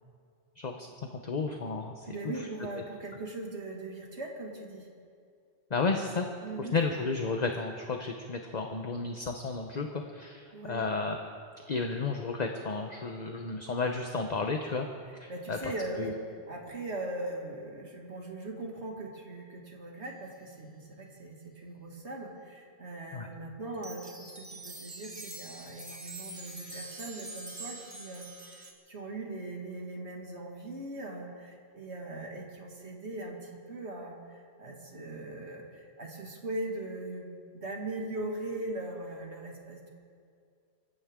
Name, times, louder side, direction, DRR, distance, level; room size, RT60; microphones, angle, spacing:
voice 1, 0.6-2.5 5.7-6.3 6.6-11.2 11.7-14.9 15.1-15.7 16.0-16.1 23.1-23.3, left 4 dB, 40° left, 4 dB, 1.0 m, -33 dB
voice 2, 2.0-4.9 6.4-6.8 10.5-10.9 15.3-28.3 28.9-39.9, right 2 dB, 85° right, 0 dB, 2.5 m, -40 dB
sound 1, 23.7-28.7, right 2 dB, 35° right, 1.7 m, -44 dB
25.5 x 15.0 x 3.7 m, 2.3 s
omnidirectional pair, 1.1 m